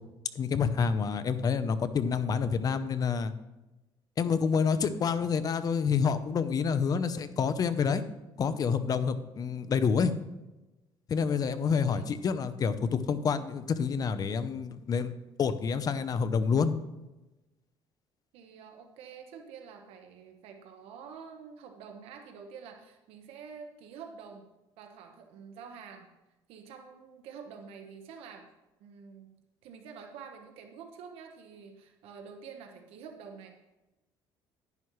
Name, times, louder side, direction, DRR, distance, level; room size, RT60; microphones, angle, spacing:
voice 1, 0.3-3.3 4.2-8.0 8.4-10.1 11.1-16.8, left 6 dB, 40° left, 12 dB, 0.7 m, -28 dB
voice 2, 18.3-24.5 24.8-26.1 26.5-28.5 28.8-29.3 29.6-33.5, right 6 dB, 85° right, 4 dB, 1.2 m, -48 dB
11.0 x 10.5 x 3.2 m, 1.0 s
cardioid pair, 120°, 10 cm